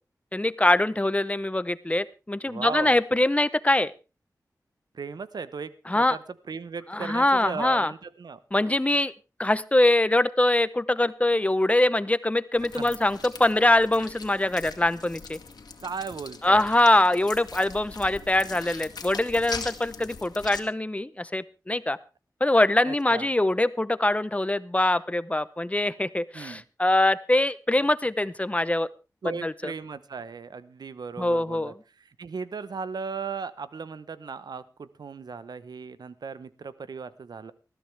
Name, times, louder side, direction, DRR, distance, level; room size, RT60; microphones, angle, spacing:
voice 1, 0.3-3.9 5.9-6.2 6.9-7.9 8.5-9.1 9.4-15.4 16.4-22.0 22.4-28.9 29.2-29.7 31.2-31.7, left 1 dB, 20° left, 16 dB, 0.8 m, -23 dB
voice 2, 2.5-2.9 4.9-8.4 12.7-12.8 15.8-16.7 22.9-23.3 26.3-26.6 29.2-31.7 32.2-37.5, right 5 dB, 80° right, 15 dB, 0.9 m, -37 dB
sound 1, 12.6-20.6, left 4 dB, 85° left, 2.1 m, -41 dB
20.0 x 14.0 x 3.4 m, 0.31 s
wide cardioid pair, 70°, 7 cm